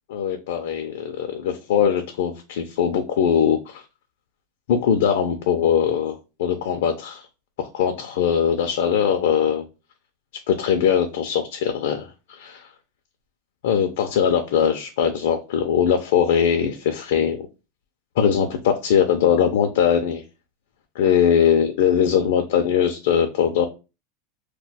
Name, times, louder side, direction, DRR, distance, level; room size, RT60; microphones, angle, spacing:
voice 1, 0.1-3.8 4.7-7.2 7.7-9.6 10.5-12.7 13.6-17.5 18.2-20.2 21.0-23.6, left 8 dB, 80° left, 5 dB, 0.4 m, -21 dB
2.3 x 2.2 x 3.9 m, 0.29 s
supercardioid pair, 165°, 0 cm